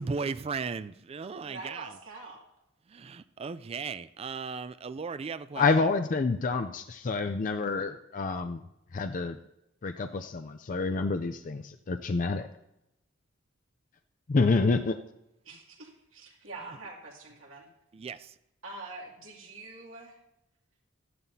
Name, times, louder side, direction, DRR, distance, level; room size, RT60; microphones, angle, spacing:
voice 1, 0.0-1.9 2.9-5.7 17.9-18.3, right 5 dB, 30° right, 14 dB, 0.3 m, -36 dB
voice 2, 1.4-2.4 15.4-17.7 18.6-20.2, right 3 dB, 85° right, -2 dB, 2.6 m, -44 dB
voice 3, 5.6-8.6 8.9-9.4 9.8-12.5 14.3-15.0, left 4 dB, 40° left, 7 dB, 0.4 m, -28 dB
13.5 x 11.0 x 2.7 m, 0.86 s
head